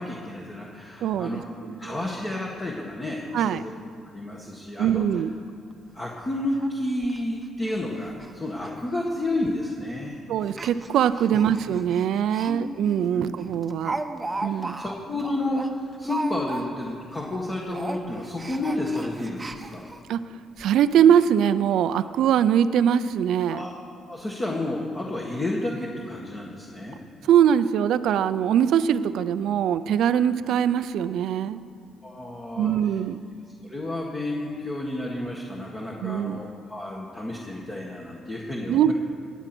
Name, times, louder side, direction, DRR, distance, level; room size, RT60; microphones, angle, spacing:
voice 1, 0.0-1.5 1.8-3.7 4.1-5.2 5.9-10.2 12.5-12.6 13.1-13.3 14.5-19.9 23.5-23.7 24.1-27.0 30.1-30.2 32.0-32.7 33.6-38.9, left 1 dB, 30° left, -3 dB, 1.7 m, -31 dB
voice 2, 1.0-1.4 1.7-2.0 3.3-3.6 4.8-5.3 10.3-14.0 14.4-14.8 20.1-20.2 20.6-23.7 27.2-31.6 32.6-33.3 36.0-36.4 38.7-38.9, right 9 dB, 80° right, 13 dB, 0.5 m, -22 dB
Speech, 5.7-5.8 6.1-6.2 6.6-6.7 7.0-7.2 7.6-7.8 8.0-8.3 8.6-8.7 9.5-9.7 10.4-12.5 12.9-13.0 13.4-16.9 17.2-17.4 17.7-20.0 20.6-20.7 21.0-21.1, right 2 dB, 20° right, 0.9 m, -36 dB
19.0 x 8.1 x 6.1 m, 2.3 s
cardioid pair, 90°, 0 cm